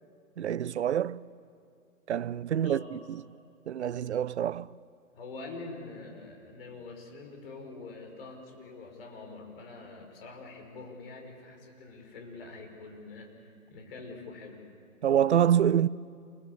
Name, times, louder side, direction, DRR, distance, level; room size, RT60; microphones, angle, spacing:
voice 1, 0.4-1.2 2.1-3.2 3.7-4.7 15.0-15.9, right 9 dB, 50° right, 0.6 m, -26 dB
voice 2, 5.1-14.6, left 3 dB, 40° left, 5.6 m, -45 dB
28.5 x 21.5 x 8.5 m
hypercardioid pair, 155°, 42 cm